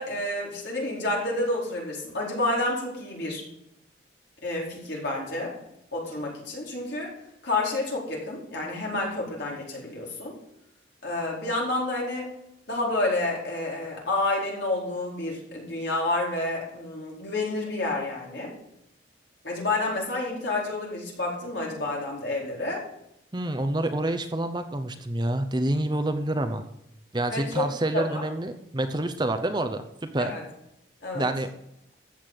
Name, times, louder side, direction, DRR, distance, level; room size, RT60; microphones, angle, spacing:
voice 1, 0.0-3.4 4.4-5.5 5.9-7.1 7.4-10.3 11.0-12.3 12.7-18.5 19.4-22.8 27.3-27.7 27.9-28.3 30.2-30.5 31.0-31.3, left 2 dB, 65° left, -3 dB, 4.6 m, -29 dB
voice 2, 23.3-26.6 27.1-30.4 31.1-31.5, right 1 dB, 25° right, 8 dB, 0.7 m, -27 dB
14.0 x 6.8 x 7.6 m, 0.81 s
head